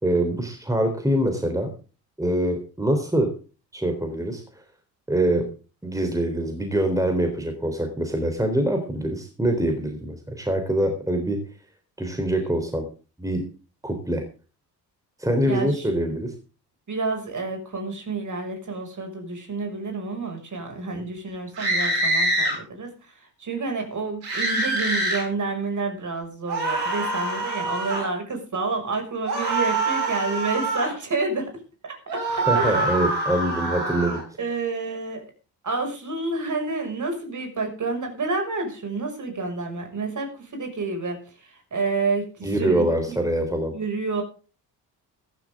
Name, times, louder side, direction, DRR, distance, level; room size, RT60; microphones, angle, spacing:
voice 1, 0.0-1.7 2.2-3.3 3.7-4.4 5.1-5.5 5.8-11.4 12.0-12.8 13.2-13.4 13.8-14.2 15.2-16.3 20.9-21.0 32.4-34.2 42.4-43.7, right 1 dB, 5° right, 5 dB, 3.8 m, -24 dB
voice 2, 15.5-15.9 16.9-31.5 31.8-33.2 34.4-35.3 35.6-43.2 43.7-44.2, right 3 dB, 35° right, 4 dB, 6.2 m, -29 dB
sound 1, 21.5-22.5 24.2-25.2 26.5-28.1 29.2-30.9 32.1-34.2, right 2 dB, 80° right, 6.1 m, -25 dB
15.0 x 15.0 x 3.7 m, 0.36 s
figure-of-eight pair, 50°, 50 cm